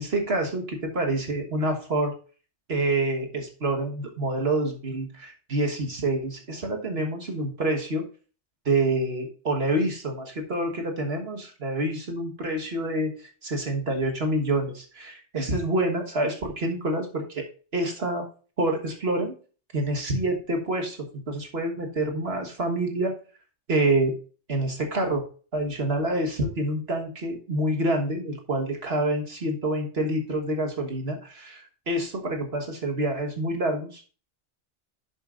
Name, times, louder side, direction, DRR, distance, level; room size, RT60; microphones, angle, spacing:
voice 1, 0.0-2.1 2.7-8.0 8.7-17.4 17.7-18.2 18.6-19.3 19.7-23.1 23.7-24.1 24.5-25.2 25.5-34.0, right 1 dB, 60° right, 3 dB, 1.7 m, -27 dB
11.5 x 7.2 x 2.5 m, 0.38 s
omnidirectional pair, 1.2 m